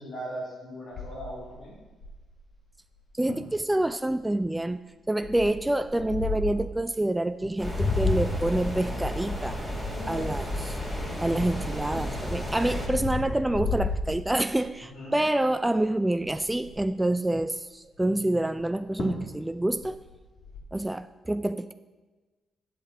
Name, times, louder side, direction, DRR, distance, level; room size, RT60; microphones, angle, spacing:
voice 1, 0.0-1.7 9.8-10.3 10.8-11.4 14.9-15.2, equal, 70° left, -8 dB, 2.7 m, -39 dB
sound 1, 0.9-2.4 3.0-3.1 3.3-3.5 4.1-4.4 5.2-6.7 7.4-11.3 11.7-14.8 15.2-15.5 15.8-15.9 16.1-16.9 18.6-18.7 19.0-19.3 19.6-20.6, left 3 dB, 50° left, 1.8 m, -33 dB
voice 2, 3.1-4.8 5.1-9.6 10.1-10.8 11.2-20.0 20.7-21.7, right 1 dB, 15° right, 11 dB, 0.3 m, -27 dB
sound 2, 7.6-12.9, equal, 10° left, 2.0 m, -32 dB
8.0 x 6.8 x 4.3 m, 1.2 s
hypercardioid pair, 45°, 0 cm